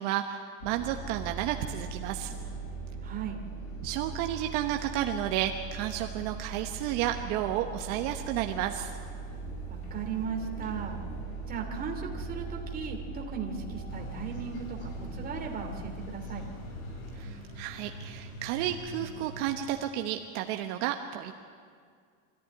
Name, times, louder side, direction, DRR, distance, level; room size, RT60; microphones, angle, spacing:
voice 1, 0.0-2.3 3.8-9.0 17.2-21.3, right 12 dB, 60° right, 5 dB, 1.2 m, -32 dB
sound 1, 0.6-17.2, right 4 dB, 85° left, 4.8 m, -40 dB
voice 2, 3.0-3.4 9.7-11.0 11.5-16.4, right 6 dB, 20° right, 2 dB, 2.7 m, -37 dB
sound 2, 13.9-19.9, equal, 50° left, 4.8 m, -44 dB
25.0 x 14.5 x 9.8 m, 2.1 s
supercardioid pair, 155°, 41 cm